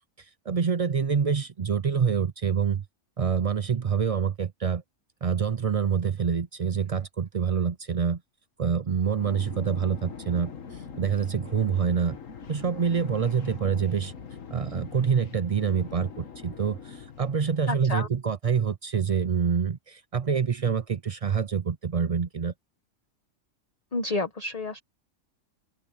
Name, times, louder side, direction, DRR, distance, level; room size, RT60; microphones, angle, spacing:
voice 1, 0.5-2.8 3.2-4.8 5.2-8.2 8.6-10.5 11.0-12.2 12.5-14.1 14.5-22.5, right 6 dB, 55° right, 0.4 m, -26 dB
sound 1, 9.1-18.0, left 6 dB, 85° left, 1.8 m, -43 dB
voice 2, 17.7-18.1 23.9-24.8, left 2 dB, 30° left, 1.3 m, -30 dB
open air
omnidirectional pair, 1.3 m